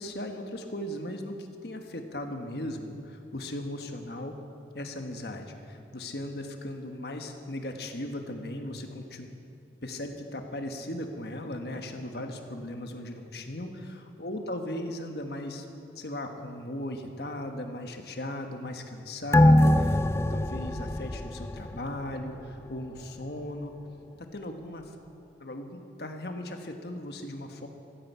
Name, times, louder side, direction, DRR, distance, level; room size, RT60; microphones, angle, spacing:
voice 1, 0.0-1.3 1.6-4.4 4.7-9.3 9.8-15.6 15.9-23.7 24.3-24.9 25.4-27.7, left 1 dB, 60° left, 5 dB, 1.4 m, -37 dB
sound 1, 19.3-22.2 22.6-22.7, left 1 dB, 15° left, 0.3 m, -23 dB
14.5 x 9.9 x 8.1 m, 2.6 s
head